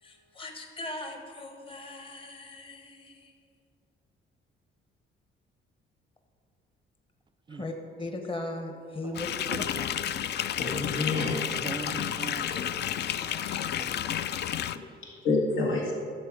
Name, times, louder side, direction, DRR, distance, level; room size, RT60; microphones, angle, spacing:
voice 1, 0.0-3.3 7.5-9.3, left 2 dB, 25° left, 1.1 m, -38 dB
sound 1, 9.2-14.8, left 10 dB, 60° left, 0.4 m, -31 dB
voice 2, 10.6-11.6 11.8-12.0 12.4-12.7 14.7-15.9, left 3 dB, 85° left, 1.9 m, -29 dB
voice 3, 11.6-12.5 13.1-14.3, right 4 dB, 25° right, 0.4 m, -41 dB
11.0 x 7.5 x 4.9 m
cardioid pair, 90°, 20 cm